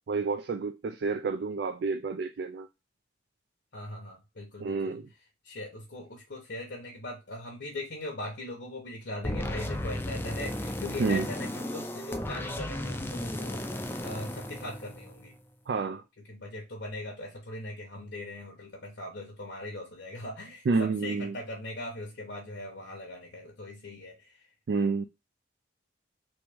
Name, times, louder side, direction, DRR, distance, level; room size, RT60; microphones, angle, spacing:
voice 1, 0.1-2.7 4.6-5.1 11.0-11.3 15.7-16.0 20.7-21.4 24.7-25.0, right 4 dB, 65° right, 0.3 m, -29 dB
voice 2, 3.7-5.0 5.4-15.3 16.3-24.5, left 1 dB, 70° left, 0.9 m, -40 dB
sound 1, 9.2-15.4, left 1 dB, 10° left, 0.4 m, -35 dB
3.1 x 3.0 x 3.4 m
head